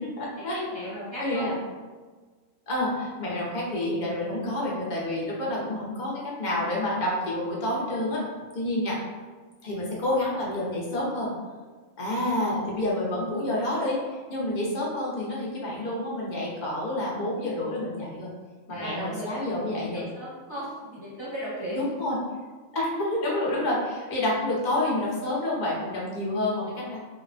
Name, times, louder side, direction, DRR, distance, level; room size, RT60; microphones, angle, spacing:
voice 1, 0.0-0.8 1.2-1.6 2.7-8.2 8.5-9.0 9.6-11.3 12.0-18.3 18.7-20.1 21.7-22.2 22.7-27.0, left 1 dB, 50° left, -5 dB, 0.6 m, -28 dB
voice 2, 0.6-1.5 18.7-19.3 19.9-21.8, equal, 20° left, -11 dB, 0.8 m, -36 dB
2.7 x 2.1 x 2.6 m, 1.4 s
omnidirectional pair, 1.4 m